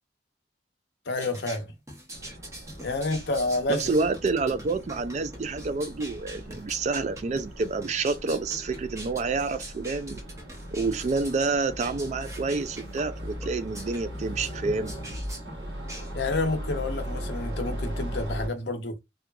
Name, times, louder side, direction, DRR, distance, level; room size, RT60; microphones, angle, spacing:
voice 1, 1.1-1.7 2.8-3.9 16.1-19.0, left 2 dB, 70° left, 0.7 m, -29 dB
sound 1, 1.1-16.5, right 1 dB, 15° right, 0.7 m, -44 dB
sound 2, 2.1-18.5, equal, 65° right, 1.0 m, -38 dB
voice 2, 3.7-10.2 10.7-14.9, right 4 dB, 40° right, 0.3 m, -28 dB
2.8 x 2.3 x 2.3 m
head